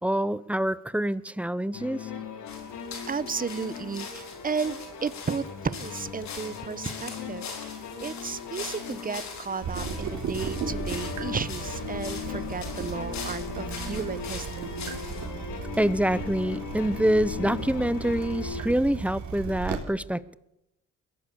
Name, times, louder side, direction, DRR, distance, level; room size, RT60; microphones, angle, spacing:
voice 1, 0.0-2.1 15.8-20.3, right 1 dB, 5° right, 18 dB, 0.8 m, -26 dB
sound 1, 1.7-18.6, left 7 dB, 80° left, 3.4 m, -38 dB
sound 2, 2.5-15.3, left 5 dB, 65° left, 4.7 m, -42 dB
voice 2, 3.1-14.8, right 5 dB, 30° right, 17 dB, 1.1 m, -34 dB
Water tap faucet / Drip, 9.6-19.8, right 6 dB, 70° right, 3.6 m, -36 dB
22.5 x 16.5 x 7.0 m, 0.86 s
cardioid pair, 90°, 30 cm